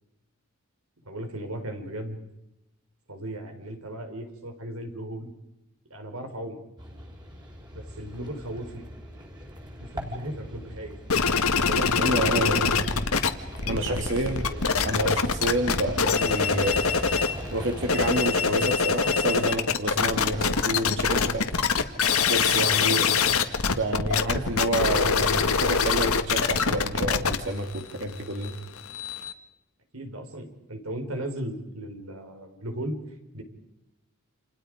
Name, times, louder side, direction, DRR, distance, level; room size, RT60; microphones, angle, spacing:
voice 1, 1.1-2.2 3.1-5.3 5.9-6.6 7.7-8.9 9.8-10.9 11.6-12.7 13.6-14.1 14.4-14.6 29.9-33.0 33.3-33.4, right 1 dB, 80° right, 5 dB, 5.2 m, -36 dB
sound 1, 6.8-18.2, equal, 20° right, 4.4 m, -40 dB
sound 2, 11.1-13.3 13.5-17.4 17.8-29.3, left 5 dB, 85° left, 1.8 m, -24 dB
voice 2, 12.0-12.7 13.6-14.4 14.8-16.8 17.5-21.5 22.2-23.1 23.7-28.5, right 1 dB, 55° right, 3 dB, 2.5 m, -29 dB
29.5 x 28.5 x 5.1 m, 0.93 s
head